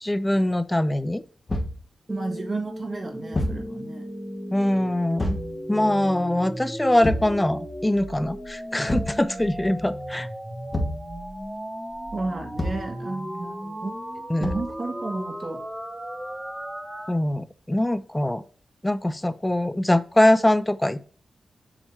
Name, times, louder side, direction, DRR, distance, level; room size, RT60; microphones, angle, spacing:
voice 1, 0.0-1.2 4.5-5.4 5.7-10.3 14.3-14.5 17.1-18.4 18.8-21.0, left 1 dB, 10° left, 14 dB, 0.4 m, -23 dB
Thump thud, 1.5-1.8 3.3-3.7 5.2-5.5 7.0-7.4 8.9-9.2 10.7-11.1 12.6-12.9 14.4-14.8, left 1 dB, 35° left, 1.3 m, -27 dB
sound 1, 2.1-17.1, equal, 10° right, 1.1 m, -36 dB
voice 2, 2.1-4.0 12.1-13.9 14.4-15.6, right 2 dB, 40° right, 3 dB, 1.6 m, -32 dB
7.2 x 3.4 x 4.2 m, 0.42 s
cardioid pair, 85°, 0 cm